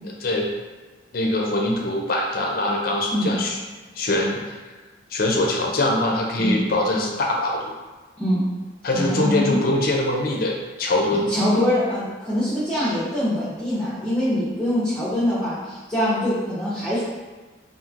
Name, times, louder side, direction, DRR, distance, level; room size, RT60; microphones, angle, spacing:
voice 1, 1.1-3.6 4.0-4.6 5.1-7.7 8.8-11.3, left 1 dB, 50° left, 0 dB, 0.4 m, -23 dB
voice 2, 8.9-9.6 11.3-17.0, equal, 5° left, -13 dB, 0.8 m, -23 dB
3.0 x 2.4 x 2.4 m, 1.3 s
head